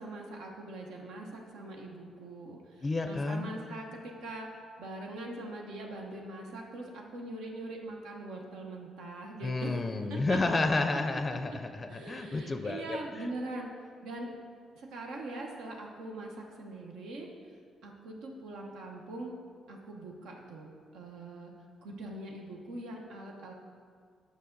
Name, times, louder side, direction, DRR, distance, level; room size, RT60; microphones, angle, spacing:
voice 1, 0.0-4.5 4.8-9.7 10.1-10.6 11.5-11.6 11.9-13.7 14.0-14.3 14.7-17.3 17.8-19.3 19.7-21.5 21.8-23.5, right 2 dB, 85° right, 0 dB, 1.0 m, -42 dB
voice 2, 2.8-3.5 9.4-13.2, left 3 dB, 30° left, 7 dB, 0.4 m, -31 dB
8.4 x 5.6 x 3.9 m, 2.1 s
cardioid pair, 90°, 0 cm